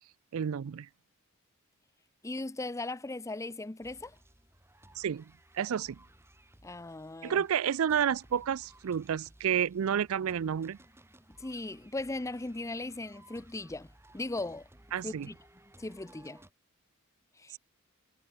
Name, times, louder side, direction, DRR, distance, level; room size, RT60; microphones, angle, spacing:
voice 1, 0.3-0.9 5.0-5.2 5.5-6.0 7.2-10.8 14.9-15.3, right 8 dB, 70° right, 0.4 m, -30 dB
voice 2, 2.2-4.2 6.6-7.4 11.4-14.7 15.0-15.3 15.8-16.4 17.4-17.6, left 2 dB, 15° left, 0.5 m, -38 dB
sound 1, 3.8-16.5, right 1 dB, 10° right, 4.3 m, -59 dB
head